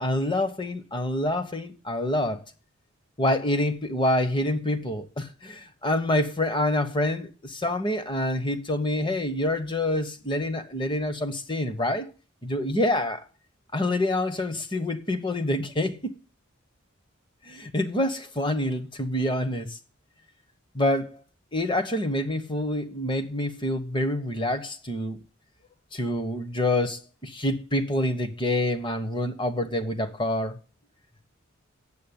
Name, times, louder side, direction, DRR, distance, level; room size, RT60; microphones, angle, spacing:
voice 1, 0.0-2.4 3.2-12.1 12.4-13.2 13.7-16.1 17.5-19.8 20.7-21.2 21.5-25.2 25.9-30.6, left 1 dB, 20° left, 1.0 m, -27 dB
8.5 x 7.5 x 8.6 m
head